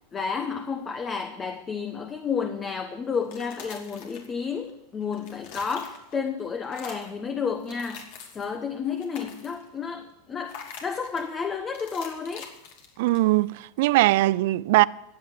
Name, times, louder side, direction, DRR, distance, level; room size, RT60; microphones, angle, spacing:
voice 1, 0.1-12.5, left 6 dB, 20° left, 1.0 m, -31 dB
sound 1, 3.1-4.7 5.0-6.3 6.6-7.2 7.6-8.6 8.9-9.7 10.5-11.3 11.7-13.4, left 6 dB, 60° left, 2.7 m, -45 dB
voice 2, 13.0-14.8, right 18 dB, 65° right, 0.4 m, -20 dB
15.0 x 8.7 x 6.7 m
supercardioid pair, 125°, 0 cm